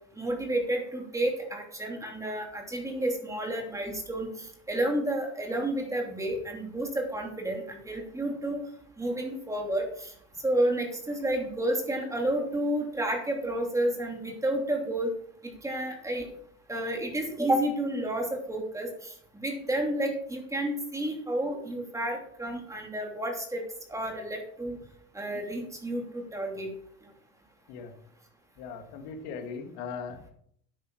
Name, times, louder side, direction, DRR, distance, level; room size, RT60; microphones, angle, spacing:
voice 1, 0.2-8.6 9.0-10.1 10.4-15.1 15.6-16.2 16.7-18.9 19.3-23.6 23.9-24.8 25.1-26.7, right 1 dB, 10° right, 1 dB, 2.9 m, -30 dB
voice 2, 28.6-30.3, left 5 dB, 70° left, 5 dB, 2.0 m, -39 dB
10.0 x 8.8 x 4.7 m, 0.65 s
supercardioid pair, 120°, 32 cm